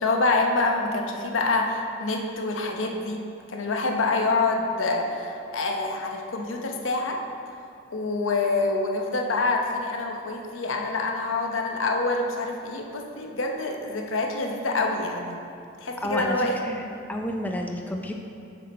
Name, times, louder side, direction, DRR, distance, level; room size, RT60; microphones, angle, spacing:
voice 1, 0.0-3.2 3.5-7.2 7.9-15.4 15.8-16.6, left 3 dB, 75° left, 2 dB, 0.8 m, -26 dB
voice 2, 16.0-16.8 17.1-18.1, left 1 dB, 10° left, 2 dB, 0.4 m, -30 dB
7.0 x 6.1 x 4.2 m, 2.8 s
head